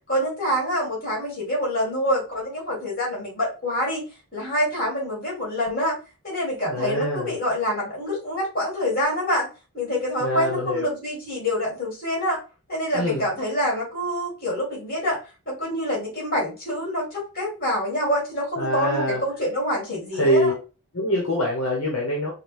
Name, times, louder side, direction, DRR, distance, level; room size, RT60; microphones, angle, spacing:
voice 1, 0.1-4.0 4.3-6.0 6.2-9.5 9.7-12.4 12.7-15.2 15.5-20.5, equal, 40° left, -3 dB, 2.3 m, -26 dB
voice 2, 6.7-7.3 10.2-10.8 12.9-13.2 18.6-19.2 20.1-20.6 20.9-22.3, equal, 70° left, -2 dB, 1.1 m, -24 dB
5.0 x 2.3 x 3.3 m, 0.32 s
head